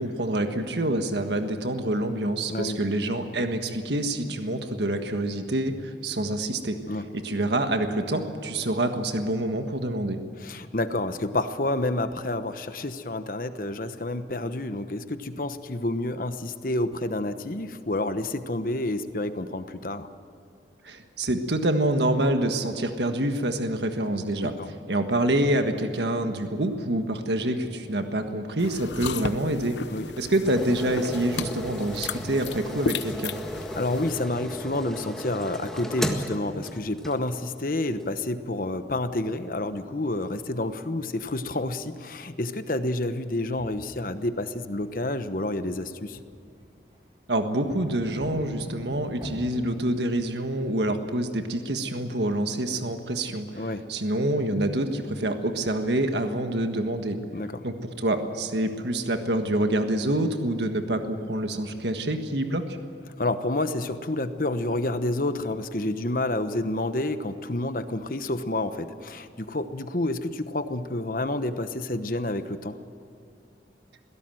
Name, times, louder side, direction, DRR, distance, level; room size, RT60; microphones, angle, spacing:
voice 1, 0.0-6.8 7.1-10.2 20.8-24.5 24.9-29.8 30.2-33.3 47.3-57.2 57.6-62.6, right 1 dB, 80° right, 6 dB, 1.5 m, -26 dB
voice 2, 10.4-20.1 24.4-24.7 29.9-30.1 33.7-46.2 53.5-53.9 57.3-57.6 63.2-72.8, left 2 dB, 50° left, 10 dB, 1.1 m, -29 dB
sound 1, 28.6-34.2, left 4 dB, 90° left, 0.8 m, -35 dB
sound 2, 30.4-37.5 38.0-38.1, equal, 5° left, 1.7 m, -35 dB
sound 3, 43.4-45.1 46.1-47.0 47.7-49.5, equal, 30° right, 7.4 m, -43 dB
22.0 x 17.0 x 7.8 m, 2.6 s
head